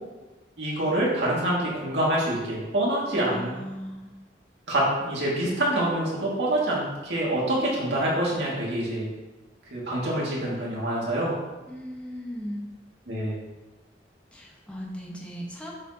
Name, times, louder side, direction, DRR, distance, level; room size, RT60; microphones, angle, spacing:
voice 1, 0.6-3.5 4.7-9.1 9.7-11.3 13.1-13.4, right 1 dB, 70° right, -5 dB, 2.3 m, -26 dB
voice 2, 3.1-4.2 11.7-12.6 14.3-15.7, equal, 5° left, -3 dB, 1.3 m, -37 dB
8.0 x 6.1 x 2.9 m, 1.1 s
head